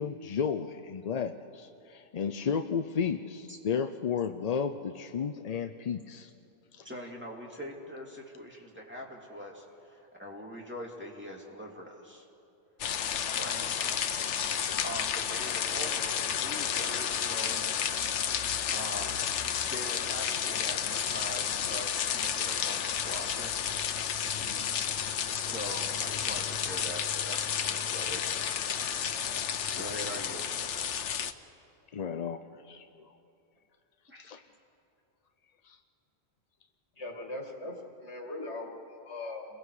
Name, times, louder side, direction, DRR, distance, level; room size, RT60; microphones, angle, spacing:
voice 1, 0.0-6.3 6.8-6.9 31.9-33.1 34.2-34.4 35.6-35.8, left 6 dB, 45° left, 8 dB, 0.5 m, -33 dB
voice 2, 6.8-12.2 13.3-13.7 14.8-17.7 18.7-19.3 19.7-23.8 25.4-28.2 29.8-30.4 34.1-34.2, equal, 10° right, -2 dB, 2.5 m, -42 dB
sound 1, 12.8-31.3, left 8 dB, 90° left, 1.1 m, -31 dB
voice 3, 37.0-39.5, left 2 dB, 70° left, 1 dB, 2.5 m, -40 dB
29.5 x 22.0 x 4.9 m, 2.7 s
omnidirectional pair, 1.2 m